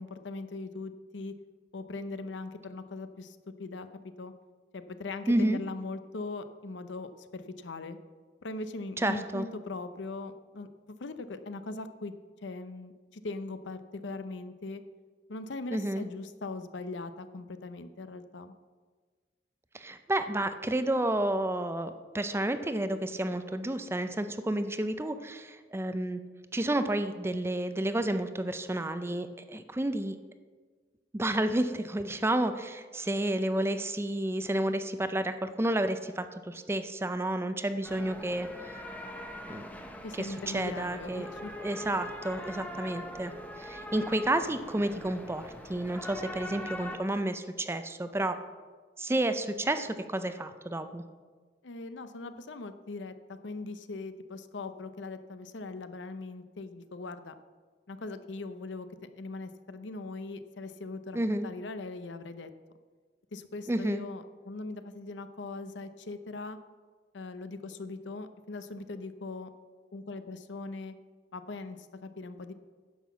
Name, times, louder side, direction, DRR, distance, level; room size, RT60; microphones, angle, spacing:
voice 1, 0.0-1.3 1.7-3.9 4.2-4.3 4.7-8.0 8.4-12.1 12.4-14.8 15.3-18.5 40.0-41.5 51.6-57.3 57.9-58.9 59.2-62.5 63.3-66.6 67.1-69.5 69.9-70.9 71.3-72.5, left 3 dB, 80° left, 10 dB, 0.7 m, -40 dB
voice 2, 5.3-5.6 9.0-9.4 15.7-16.0 19.7-26.2 26.5-30.2 31.1-38.8 39.5-39.7 40.2-41.3 41.6-43.3 43.6-48.4 49.0-51.0 61.1-61.5 63.7-64.0, right 1 dB, 15° right, 10 dB, 0.5 m, -30 dB
sound 1, 37.8-47.0, equal, 10° left, 0.8 m, -42 dB
10.5 x 5.9 x 7.2 m, 1.5 s
head